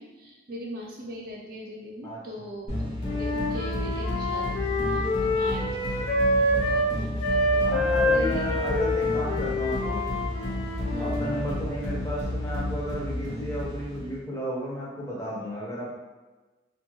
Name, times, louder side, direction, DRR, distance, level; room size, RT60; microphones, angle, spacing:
voice 1, 0.0-4.6 4.9-5.9 7.0-7.2 8.1-8.6 10.9-11.2, equal, 55° right, -3 dB, 0.5 m, -39 dB
sound 1, 2.7-14.2, left 1 dB, 40° left, 0.9 m, -32 dB
Wind instrument woodwind instrument, 3.0-6.9 7.2-11.4, left 1 dB, 85° left, 0.7 m, -27 dB
voice 2, 6.5-6.9 7.5-10.0 11.0-16.0, equal, 15° left, -6 dB, 0.7 m, -34 dB
2.5 x 2.2 x 2.9 m, 1.2 s
head